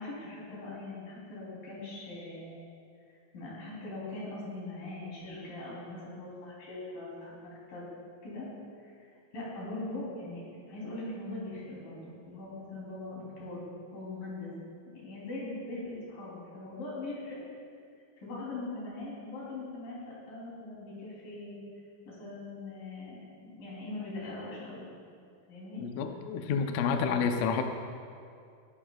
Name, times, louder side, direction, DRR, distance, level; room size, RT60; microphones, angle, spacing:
voice 1, 0.0-2.6 3.3-7.9 8.2-8.5 8.8-10.4 10.7-13.6 13.9-14.5 14.9-17.4 18.2-20.0 20.3-21.6 22.1-23.2 23.4-24.8 25.5-25.8, left 2 dB, 65° left, -6 dB, 5.0 m, -41 dB
voice 2, 25.8-27.6, left 6 dB, 80° left, 5 dB, 1.5 m, -29 dB
21.5 x 11.5 x 2.4 m, 2.3 s
omnidirectional pair, 4.2 m